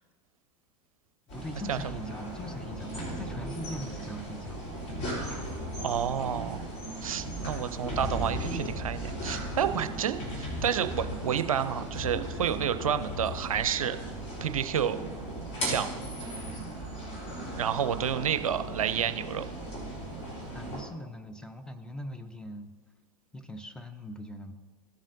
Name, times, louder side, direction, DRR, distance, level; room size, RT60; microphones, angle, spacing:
sound 1, 1.3-20.8, right 1 dB, 35° left, 3.1 m, -37 dB
voice 1, 1.3-4.6 7.4-7.7 20.5-22.7 23.3-24.5, left 1 dB, 5° left, 7 dB, 0.7 m, -41 dB
voice 2, 5.8-6.6 7.0-14.0 14.4-15.0 15.6-15.9 17.6-19.4, right 8 dB, 75° right, 11 dB, 0.5 m, -30 dB
15.5 x 7.2 x 2.6 m, 1.4 s
figure-of-eight pair, 90°, 18 cm